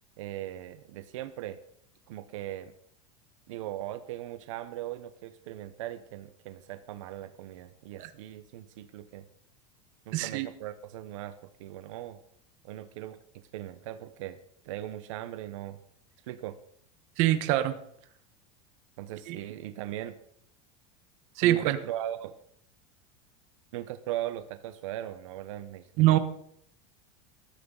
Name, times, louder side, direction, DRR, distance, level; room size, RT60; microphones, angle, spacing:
voice 1, 0.2-1.6 2.1-2.7 3.5-9.3 10.1-11.3 11.6-12.2 12.6-14.4 14.6-15.8 16.3-16.6 19.0-20.2 21.4-22.3 23.7-26.2, right 13 dB, 75° right, 10 dB, 1.0 m, -39 dB
voice 2, 10.1-10.5 17.2-17.7 19.3-19.4 21.4-21.8 26.0-26.2, right 14 dB, 45° right, 9 dB, 1.4 m, -23 dB
19.0 x 13.5 x 4.0 m, 0.67 s
supercardioid pair, 165°, 16 cm